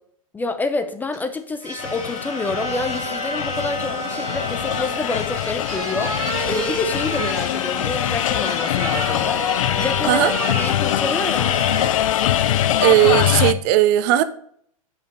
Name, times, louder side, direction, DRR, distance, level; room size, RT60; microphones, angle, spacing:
voice 1, 0.3-6.2 6.5-9.4 9.8-11.6, left 3 dB, 10° left, 0.5 m, -27 dB
sound 1, 1.1-1.2 1.6-12.0 12.4-12.6, right 3 dB, 20° right, 2.1 m, -31 dB
sound 2, 1.8-13.5, left 12 dB, 65° left, 0.5 m, -23 dB
voice 2, 12.8-14.2, right 13 dB, 40° right, 0.5 m, -16 dB
5.4 x 5.0 x 5.9 m
hypercardioid pair, 125°, 18 cm